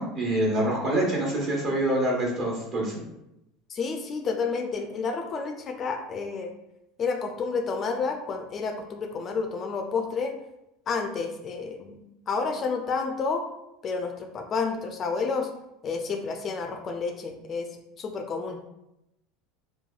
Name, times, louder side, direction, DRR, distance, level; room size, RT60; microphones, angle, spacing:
voice 1, 0.0-3.0, right 1 dB, 45° right, -3 dB, 1.1 m, -26 dB
voice 2, 3.7-6.5 7.0-10.3 10.9-13.4 13.8-15.5 15.8-17.7 18.0-18.6, left 4 dB, 35° left, 4 dB, 0.3 m, -30 dB
3.1 x 2.2 x 2.3 m, 0.87 s
supercardioid pair, 100°, 0 cm